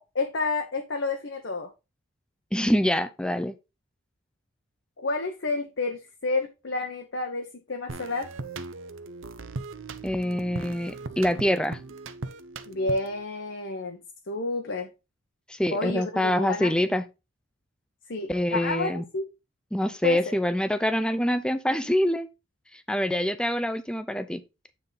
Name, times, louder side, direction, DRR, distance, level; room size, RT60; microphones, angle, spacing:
voice 1, 0.1-1.7 5.0-8.3 12.7-14.0 14.3-14.9 15.7-16.7 18.1-19.3 20.0-20.4, left 3 dB, 60° left, 0.8 m, -30 dB
voice 2, 2.5-3.5 10.0-11.8 15.5-17.0 18.3-19.0 19.7-22.3 22.7-24.4, equal, 5° left, 0.4 m, -25 dB
sound 1, 7.9-13.2, right 3 dB, 65° right, 0.7 m, -38 dB
9.2 x 3.6 x 3.8 m
head